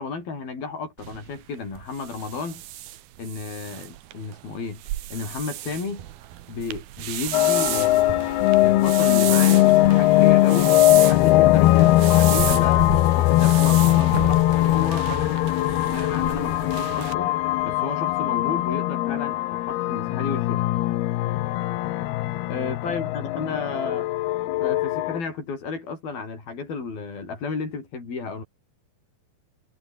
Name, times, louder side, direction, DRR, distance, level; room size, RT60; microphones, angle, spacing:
voice 1, 0.0-2.6 3.2-4.8 5.1-6.1 6.5-8.2 8.6-12.9 13.2-15.1 15.8-17.4 17.6-21.0 22.5-24.1 24.6-28.4, left 4 dB, 60° left, 9.6 m, -33 dB
sound 1, 1.0-17.1, right 14 dB, 70° right, 3.0 m, -33 dB
sound 2, 7.3-25.2, left 17 dB, 75° left, 2.8 m, -20 dB
omnidirectional pair, 4.8 m